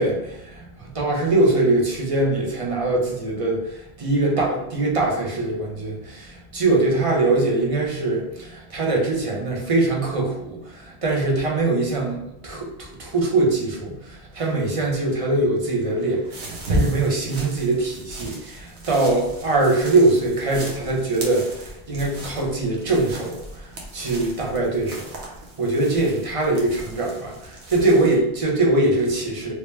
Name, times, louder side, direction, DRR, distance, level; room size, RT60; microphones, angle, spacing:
voice 1, 0.0-25.1 25.6-29.5, right 2 dB, 35° right, -1 dB, 0.8 m, -22 dB
sound 1, 16.3-28.2, right 1 dB, 90° right, 1.1 m, -34 dB
3.1 x 3.0 x 3.2 m, 0.88 s
omnidirectional pair, 1.1 m